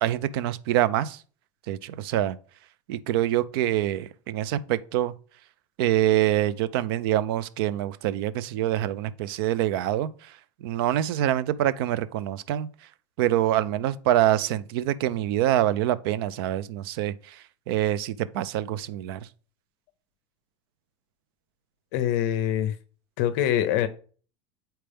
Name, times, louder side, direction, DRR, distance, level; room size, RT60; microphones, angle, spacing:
voice 1, 0.0-1.2 1.7-2.4 2.9-5.1 5.8-10.1 10.6-12.7 13.2-17.4 17.7-19.2, right 12 dB, 50° right, 0.5 m, -25 dB
voice 2, 21.9-22.7 23.2-23.9, left 11 dB, 45° left, 0.6 m, -24 dB
8.8 x 4.4 x 3.4 m
supercardioid pair, 175°, 15 cm